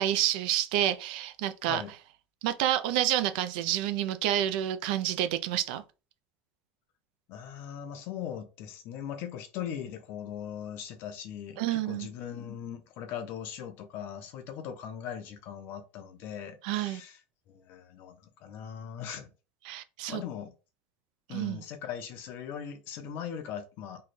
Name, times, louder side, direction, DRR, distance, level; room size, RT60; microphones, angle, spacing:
voice 1, 0.0-1.8 2.4-5.8 11.6-12.1 16.6-17.0 19.6-20.2 21.3-21.6, right 12 dB, 70° right, 0.4 m, -29 dB
voice 2, 7.3-17.2 17.5-19.3 20.1-20.5 21.3-24.0, left 9 dB, 45° left, 0.6 m, -40 dB
3.1 x 2.3 x 4.2 m
cardioid pair, 175°, 5 cm